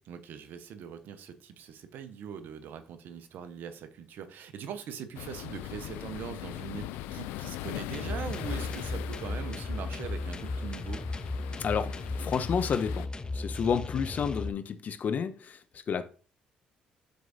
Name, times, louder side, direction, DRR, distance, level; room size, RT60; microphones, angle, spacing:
voice 1, 0.1-11.0, right 8 dB, 65° right, 1.0 m, -42 dB
sound 1, 5.1-13.1, left 14 dB, 80° left, 0.4 m, -41 dB
sound 2, 7.9-14.5, left 2 dB, 25° left, 0.9 m, -35 dB
voice 2, 11.6-16.1, left 6 dB, 55° left, 0.8 m, -31 dB
13.0 x 4.7 x 2.7 m
hypercardioid pair, 55°, 3 cm